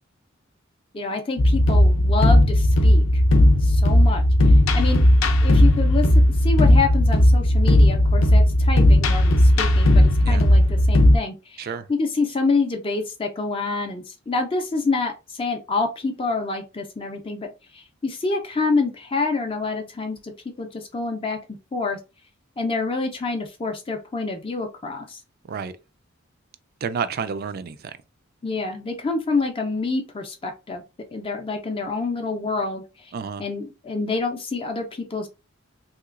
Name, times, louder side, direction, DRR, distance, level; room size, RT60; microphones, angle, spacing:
voice 1, 0.9-3.2 3.6-5.0 5.4-6.1 6.4-17.5 17.7-20.3 20.6-21.4 21.7-22.0 22.6-25.2 28.4-30.8 31.1-32.8 33.4-35.3, left 3 dB, 25° left, 0.4 m, -27 dB
sound 1, 1.4-11.2, left 1 dB, 85° left, 0.5 m, -16 dB
voice 2, 26.8-28.0 33.1-33.4, right 6 dB, 50° right, 0.3 m, -30 dB
3.2 x 2.9 x 2.4 m
head